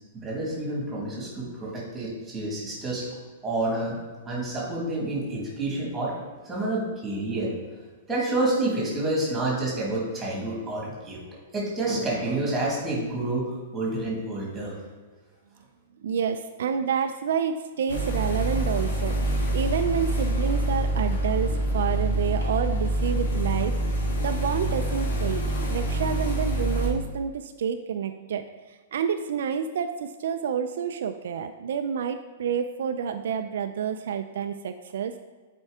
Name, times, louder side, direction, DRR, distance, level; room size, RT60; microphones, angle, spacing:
voice 1, 0.1-3.0 3.4-4.0 4.2-6.1 6.4-7.5 8.1-11.2 11.5-14.7, right 2 dB, 5° right, -4 dB, 1.6 m, -28 dB
voice 2, 16.0-19.2 19.5-25.4 25.7-35.2, right 7 dB, 65° right, 7 dB, 0.3 m, -29 dB
sound 1, 17.9-26.9, right 1 dB, 85° left, 1.6 m, -26 dB
8.1 x 4.5 x 3.5 m, 1.4 s
supercardioid pair, 180°, 0 cm